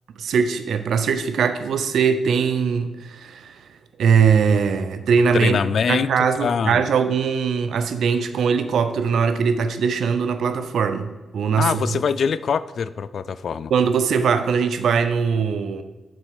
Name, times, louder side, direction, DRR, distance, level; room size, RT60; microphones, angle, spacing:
voice 1, 0.2-3.6 4.0-5.6 5.9-12.0 13.7-15.8, right 6 dB, 75° right, 10 dB, 0.6 m, -21 dB
voice 2, 5.3-6.8 11.6-13.7, left 6 dB, 65° left, 16 dB, 0.3 m, -23 dB
6.2 x 4.2 x 6.5 m, 1.2 s
supercardioid pair, 55°, 0 cm